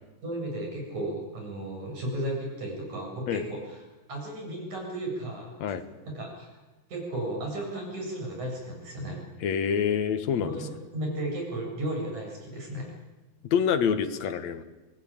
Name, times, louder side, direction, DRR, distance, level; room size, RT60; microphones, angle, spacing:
voice 1, 0.2-3.8 4.1-5.5 6.1-6.5 6.9-9.2 10.4-12.9, right 1 dB, 70° right, 1 dB, 9.3 m, -34 dB
voice 2, 9.4-10.7 13.4-14.6, left 7 dB, 65° left, 10 dB, 2.6 m, -26 dB
25.0 x 20.0 x 9.0 m, 1.2 s
omnidirectional pair, 3.5 m